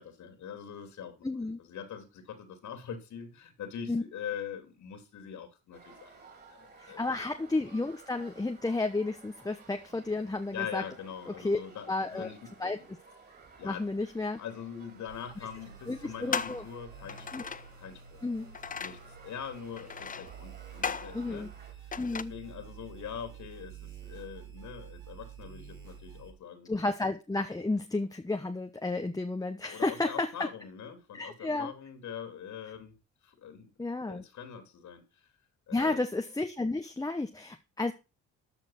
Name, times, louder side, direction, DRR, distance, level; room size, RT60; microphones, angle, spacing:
voice 1, 0.0-7.3 10.5-12.9 13.6-13.9 14.4-17.5 17.8-18.2 18.8-21.5 21.8-26.7 29.7-33.0 33.2-33.7 34.0-35.3 35.7-36.0, left 8 dB, 70° left, 3.3 m, -43 dB
voice 2, 1.2-1.6 3.9-4.0 6.8-10.8 11.4-11.6 11.9-12.3 12.6-12.8 13.6-14.4 15.9-16.6 17.3-17.5 18.2-18.5 21.1-21.5 22.0-22.3 26.7-30.3 31.1-31.7 33.8-34.2 35.7-37.9, left 2 dB, 10° left, 1.0 m, -32 dB
sound 1, 5.7-21.7, right 4 dB, 35° right, 4.3 m, -55 dB
sound 2, 14.2-14.3 15.3-15.4 16.3-16.7 17.1-17.7 18.5-19.1 19.8-20.4 20.8-21.2 21.9-22.2, left 6 dB, 25° left, 0.6 m, -36 dB
sound 3, 15.1-26.3, right 8 dB, 90° right, 6.6 m, -49 dB
13.0 x 5.8 x 5.8 m
cardioid pair, 90°, 30 cm